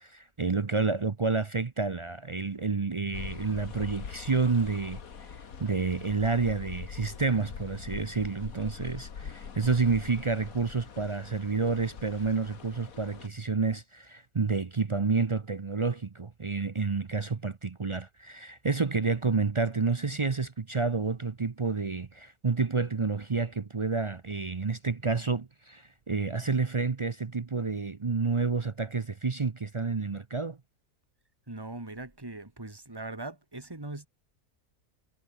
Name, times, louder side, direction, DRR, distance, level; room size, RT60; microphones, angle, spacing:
voice 1, 0.0-5.3 5.6-30.6, right 4 dB, 40° right, 0.4 m, -29 dB
sound 1, 3.1-13.3, left 6 dB, 65° left, 2.0 m, -43 dB
voice 2, 31.5-34.1, right 2 dB, 15° right, 2.5 m, -40 dB
omnidirectional pair, 1.6 m